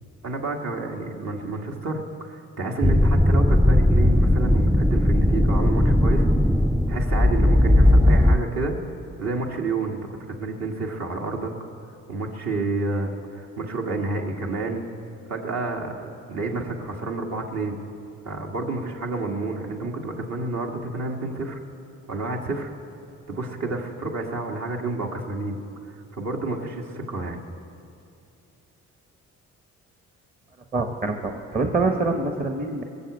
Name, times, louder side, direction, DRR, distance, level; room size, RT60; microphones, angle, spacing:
voice 1, 0.2-6.3 6.9-8.7 9.2-10.0 10.3-11.7 12.1-14.8 15.3-17.8 18.3-21.6 22.1-22.7 23.3-25.6 25.9-27.4, right 3 dB, 60° right, 1 dB, 1.9 m, -29 dB
sound 1, 2.8-8.4, left 1 dB, ahead, 0.3 m, -18 dB
voice 2, 30.7-32.8, right 3 dB, 30° right, 4 dB, 1.1 m, -25 dB
20.0 x 7.2 x 8.1 m, 2.5 s
cardioid pair, 90°, 30 cm